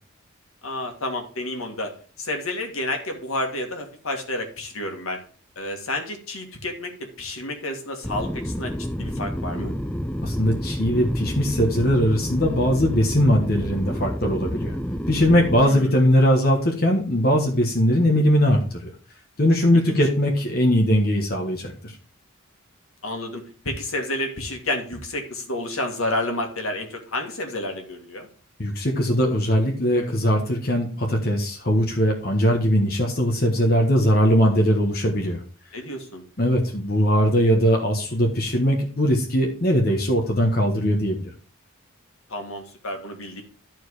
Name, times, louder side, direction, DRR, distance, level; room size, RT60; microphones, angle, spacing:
voice 1, 0.6-5.2 5.6-8.7 9.0-9.7 15.6-16.0 19.7-20.0 23.0-28.3 35.7-36.2 42.3-43.4, left 1 dB, 70° left, 3 dB, 2.0 m, -30 dB
sound 1, 8.0-15.6, equal, 5° left, 0.4 m, -29 dB
voice 2, 10.2-14.7 15.1-18.9 19.4-21.9 28.6-35.4 36.4-41.3, equal, 45° left, 0 dB, 1.3 m, -20 dB
12.0 x 4.7 x 4.8 m, 0.40 s
head